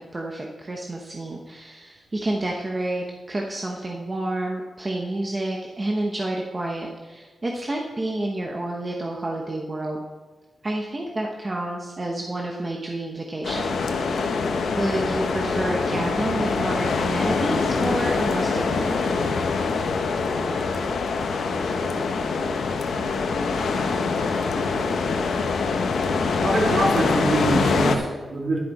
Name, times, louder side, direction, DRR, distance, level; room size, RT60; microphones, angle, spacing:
voice 1, 0.1-10.0 10.6-14.4 14.8-19.0, right 1 dB, 25° right, -1 dB, 0.9 m, -29 dB
sound 1, 13.4-28.0, left 4 dB, 80° left, 0.9 m, -24 dB
voice 2, 26.3-28.6, right 2 dB, 55° right, -2 dB, 2.8 m, -24 dB
11.0 x 10.0 x 4.2 m, 1.3 s
wide cardioid pair, 145°, 0 cm